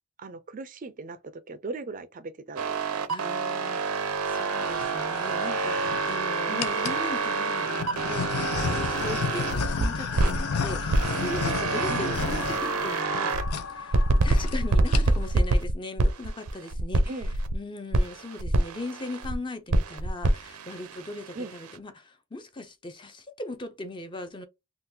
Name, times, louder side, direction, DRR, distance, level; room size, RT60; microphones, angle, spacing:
voice 1, 0.2-3.0 6.5-6.7 11.9-12.1 17.1-17.3 21.3-21.5, right 3 dB, 35° right, 0.4 m, -38 dB
sound 1, 2.6-10.4 10.9-13.5 13.9-17.6 17.9-19.4 19.7-21.8, right 2 dB, 85° right, 0.6 m, -27 dB
voice 2, 3.1-13.4 13.7-17.1 17.5-24.5, left 2 dB, 20° left, 0.5 m, -39 dB
sound 2, 4.3-15.6, left 5 dB, 65° left, 0.8 m, -38 dB
sound 3, 4.5-4.9 5.6-6.1 6.6-7.1 7.8-13.2 13.5-13.7 14.0-14.1 14.3-14.6 14.8-15.3, left 5 dB, 85° left, 0.5 m, -32 dB
3.7 x 2.3 x 2.7 m
head